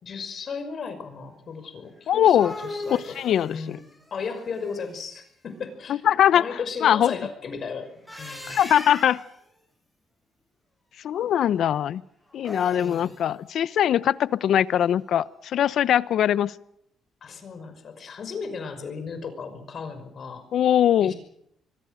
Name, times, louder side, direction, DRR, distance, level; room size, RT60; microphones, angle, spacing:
voice 1, 0.0-3.8 4.1-6.0 6.3-8.6 12.7-13.1 17.2-20.4 21.0-21.1, left 5 dB, 55° left, 8 dB, 5.8 m, -35 dB
voice 2, 2.1-2.5 2.9-3.8 6.0-6.5 6.8-7.2 8.5-9.2 11.0-12.0 12.3-16.5 20.5-21.1, left 10 dB, 70° left, 17 dB, 0.9 m, -21 dB
sound 1, 2.1-5.1 7.9-9.4 12.3-13.2, left 1 dB, 5° left, 7.9 m, -39 dB
25.5 x 23.0 x 6.5 m, 0.74 s
cardioid pair, 90°, 0 cm